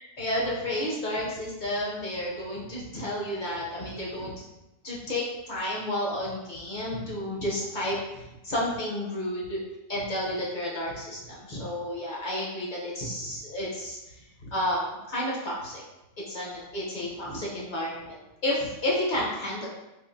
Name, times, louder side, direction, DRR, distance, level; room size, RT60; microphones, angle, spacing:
voice 1, 0.2-4.4 4.8-9.6 9.9-15.8 16.3-19.7, left 1 dB, 45° left, -5 dB, 0.8 m, -31 dB
3.7 x 2.5 x 2.6 m, 0.97 s
omnidirectional pair, 1.3 m